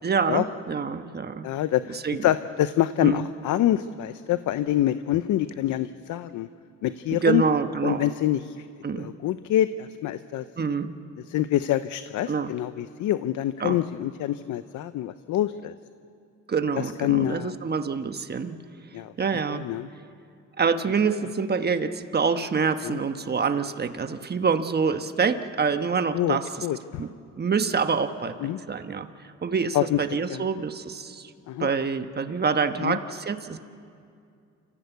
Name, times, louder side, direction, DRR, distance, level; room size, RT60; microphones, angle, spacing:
voice 1, 0.0-1.5 1.9-2.3 3.0-3.3 7.1-8.1 8.8-9.1 10.6-10.9 12.3-12.5 13.6-13.8 16.5-18.6 19.2-19.6 20.6-26.7 27.0-27.1 27.4-29.1 29.4-31.3 31.6-33.6, right 5 dB, 35° right, 9 dB, 1.2 m, -26 dB
voice 2, 1.4-6.5 6.8-7.4 7.8-8.7 8.9-10.4 11.3-15.7 17.0-17.6 18.9-19.1 19.5-19.9 22.8-23.0 26.1-27.0 28.4-28.6 29.7-30.0 30.3-30.4 31.5-31.7 32.8-33.0, left 13 dB, 75° left, 13 dB, 0.7 m, -26 dB
28.5 x 15.0 x 8.2 m, 2.4 s
cardioid pair, 90°, 30 cm